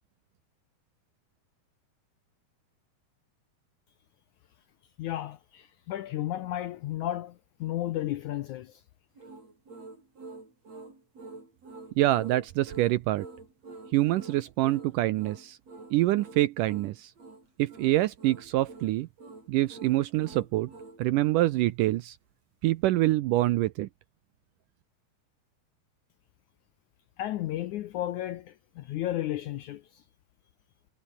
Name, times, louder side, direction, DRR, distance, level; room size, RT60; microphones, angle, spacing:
voice 1, 5.0-8.8 27.2-30.0, left 13 dB, 75° left, 1.8 m, -33 dB
sound 1, 9.2-21.0, right 3 dB, 40° right, 8.7 m, -47 dB
voice 2, 12.0-13.3 13.9-15.6 15.9-17.1 17.6-19.1 19.5-20.7 21.0-22.2 22.6-23.9, right 16 dB, 80° right, 2.0 m, -25 dB
omnidirectional pair, 4.4 m